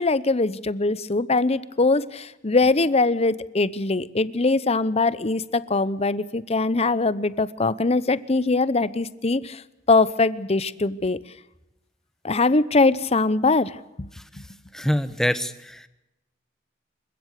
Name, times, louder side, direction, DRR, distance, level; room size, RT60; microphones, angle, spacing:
voice 1, 0.0-9.6 9.9-11.2 12.2-14.1 14.3-14.4, left 3 dB, 35° left, 17 dB, 0.9 m, -22 dB
voice 2, 14.7-15.9, equal, 5° left, 12 dB, 1.2 m, -25 dB
28.0 x 16.0 x 6.7 m, 0.95 s
head